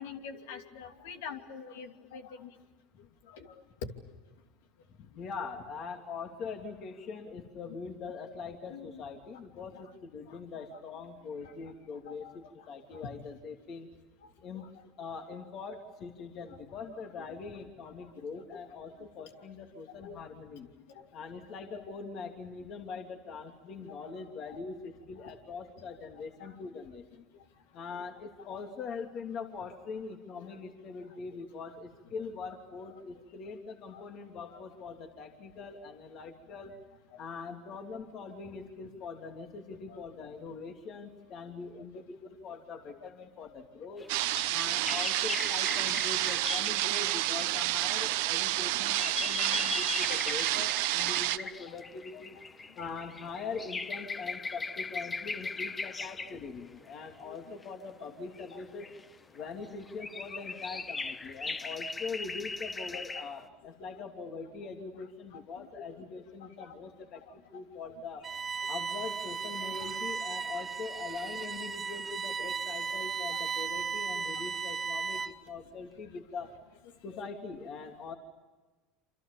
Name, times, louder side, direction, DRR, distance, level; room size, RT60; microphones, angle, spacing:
voice 1, 0.0-2.5 3.3-3.9 7.7-7.8 8.7-9.0 10.3-10.4 10.7-10.8 11.4-11.5 12.1-12.3 12.9-13.1 14.5-14.7 17.2-17.4 18.5-18.6 19.0-19.1 20.0-20.2 20.9-21.1 21.7-21.8 23.9-24.1 24.5-24.6 25.2-25.3 26.4-26.6 28.5-28.6 30.4-30.5 32.2-32.3 32.8-33.0 33.9-34.0 34.5-34.6 39.9-40.0 41.6-42.0 49.2-49.5 50.1-50.2 51.7-51.8 52.1-52.2 56.2-56.3 57.2-57.4 58.5-58.6 59.4-59.5 60.3-60.4 65.3-66.0 66.4-66.8 67.5-67.6 68.6-68.7 69.6-69.9 73.1-73.4 74.3-74.4 75.1-75.2 77.1-77.2, left 6 dB, 85° left, 5 dB, 2.8 m, -47 dB
voice 2, 5.0-13.9 14.4-14.7 15.0-20.7 21.1-27.3 27.7-36.7 37.2-44.0 44.5-52.4 52.7-58.9 59.3-68.2 68.7-76.5 77.0-78.1, left 5 dB, 50° left, 4 dB, 3.1 m, -42 dB
sound 1, 44.0-47.6 48.3-56.5 57.6-57.7 58.3-59.4 59.6-63.4, left 3 dB, 20° left, 1.2 m, -39 dB
sound 2, 44.1-51.4, right 18 dB, 80° right, 1.1 m, -30 dB
Bowed string instrument, 68.2-75.5, right 5 dB, 25° right, 1.6 m, -36 dB
28.0 x 26.5 x 7.1 m, 1.3 s
supercardioid pair, 105°, 0 cm